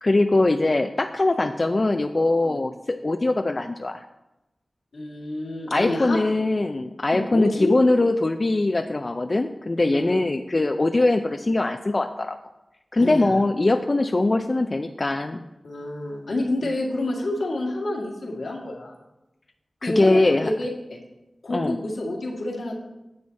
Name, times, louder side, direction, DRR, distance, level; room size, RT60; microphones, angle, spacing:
voice 1, 0.0-4.0 5.7-12.4 12.9-15.4 19.8-20.5 21.5-21.8, left 2 dB, 45° left, 6 dB, 0.4 m, -22 dB
voice 2, 4.9-6.2 7.1-7.8 9.9-10.2 12.9-13.3 15.6-18.9 19.8-21.0 21.4-22.8, left 1 dB, 80° left, -1 dB, 1.9 m, -28 dB
9.5 x 7.1 x 4.1 m, 0.98 s
cardioid pair, 50°, 0 cm